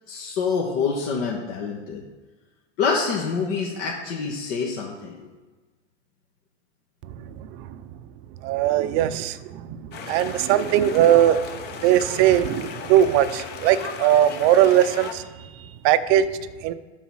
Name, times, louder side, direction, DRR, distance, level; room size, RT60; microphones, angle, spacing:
voice 1, 0.1-2.0 2.8-5.3 15.3-15.7, left 5 dB, 55° left, -2 dB, 1.5 m, -27 dB
voice 2, 8.4-9.8 10.1-11.4 11.8-15.2 15.8-16.2 16.6-16.7, right 11 dB, 35° right, 11 dB, 0.5 m, -19 dB
sound 1, 9.9-15.1, left 6 dB, 30° left, 0.8 m, -36 dB
11.0 x 4.1 x 6.2 m, 1.3 s
supercardioid pair, 140°, 36 cm